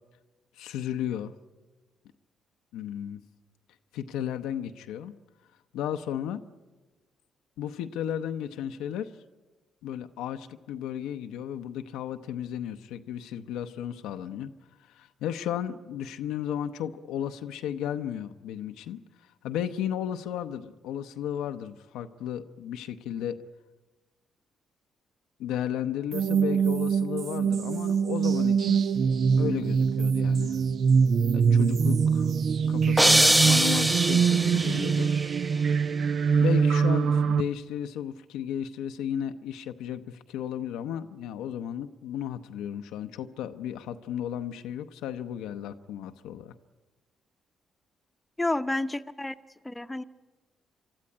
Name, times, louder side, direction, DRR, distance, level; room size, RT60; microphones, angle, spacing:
voice 1, 0.6-1.4 2.7-3.2 3.9-5.2 5.7-6.4 7.6-9.1 9.8-14.5 14.9-19.0 19.4-23.4 25.4-28.8 29.4-30.6 31.3-32.3 32.7-35.1 36.4-46.5, left 10 dB, 80° left, 7 dB, 0.7 m, -34 dB
sound 1, 26.1-37.4, right 6 dB, 60° right, 0.6 m, -24 dB
sound 2, 33.0-35.1, right 1 dB, 10° right, 0.8 m, -22 dB
voice 2, 48.4-49.3 49.6-50.0, left 2 dB, 15° left, 9 dB, 0.9 m, -29 dB
24.0 x 12.5 x 9.8 m, 1.2 s
hypercardioid pair, 45°, 0 cm